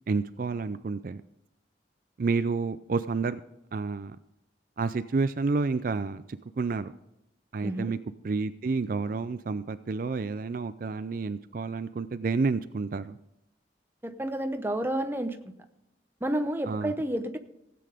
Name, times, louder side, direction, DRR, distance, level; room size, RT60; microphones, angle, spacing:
voice 1, 0.1-1.2 2.2-3.4 3.7-4.2 4.8-6.2 6.6-6.9 7.5-8.0 8.2-13.2 16.6-16.9, right 4 dB, 50° right, 13 dB, 0.4 m, -29 dB
voice 2, 7.6-7.9 14.0-15.5 16.2-17.4, right 1 dB, 10° right, 7 dB, 0.8 m, -30 dB
16.0 x 8.7 x 5.0 m, 0.86 s
head